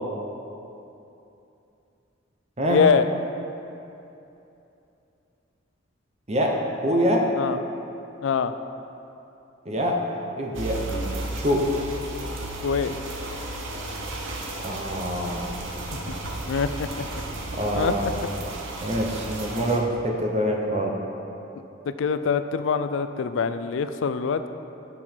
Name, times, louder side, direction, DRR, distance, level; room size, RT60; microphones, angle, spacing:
voice 1, 2.7-3.1 7.4-7.6 8.2-8.5 12.6-12.9 16.5-17.0 17.7-18.3 21.5-24.5, left 6 dB, 75° left, 11 dB, 0.4 m, -24 dB
voice 2, 6.3-7.3 9.7-10.0 10.3-11.7 14.6-15.5 17.6-18.2 18.8-20.9, equal, 35° right, 0 dB, 0.8 m, -25 dB
sound 1, 10.5-19.8, right 2 dB, 85° right, 0.8 m, -34 dB
8.6 x 5.6 x 4.5 m, 2.8 s
head